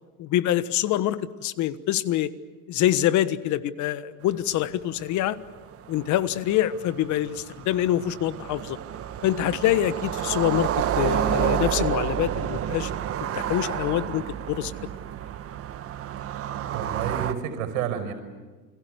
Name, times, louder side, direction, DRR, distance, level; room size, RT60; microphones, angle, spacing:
voice 1, 0.2-2.3 2.7-5.4 5.9-8.8 9.2-10.7 11.0-12.9 13.3-14.7, left 13 dB, 40° left, 14 dB, 1.4 m, -25 dB
sound 1, 4.4-4.5 4.8-4.9 5.1-17.3, right 10 dB, 30° right, 1.7 m, -30 dB
voice 2, 16.7-18.1, right 8 dB, 70° right, 8 dB, 5.4 m, -30 dB
29.5 x 22.0 x 8.1 m, 1.3 s
hypercardioid pair, 110°, 44 cm